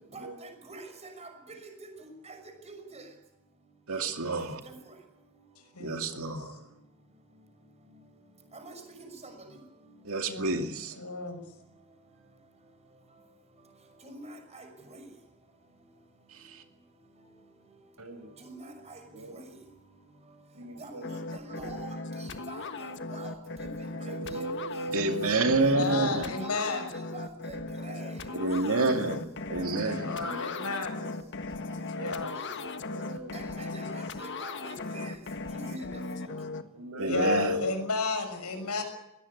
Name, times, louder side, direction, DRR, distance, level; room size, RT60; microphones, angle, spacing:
voice 1, 0.1-1.7 2.0-2.4 2.7-3.0 4.6-4.7 8.5-9.3 14.0-15.0 18.4-19.0 19.3-19.4 20.8-23.3 23.6-24.4 25.5-27.6 27.8-28.2 33.3-35.2 35.5-36.0, right 2 dB, 30° right, 6 dB, 6.0 m, -46 dB
voice 2, 3.9-4.6 5.8-6.6 10.0-11.0 16.3-16.6 24.9-26.2 28.3-29.2 29.5-30.5 37.0-37.6, right 3 dB, 70° right, 6 dB, 2.4 m, -28 dB
voice 3, 5.7-6.3 10.3-10.6 11.0-11.4 25.5-26.8 29.7-31.0 32.0-32.4 33.6-33.8 37.1-38.8, left 3 dB, 80° left, 7 dB, 6.2 m, -33 dB
voice 4, 20.5-21.1 23.6-26.1 26.7-26.8 28.6-29.1 29.6-30.7 30.9-31.3 31.9-33.3 35.5-35.8 36.0-36.2 36.7-37.8 38.5-38.8, left 1 dB, 85° right, 8 dB, 5.8 m, -39 dB
sound 1, 21.0-36.6, left 3 dB, 55° left, 1.5 m, -38 dB
22.0 x 18.0 x 9.8 m, 0.89 s
head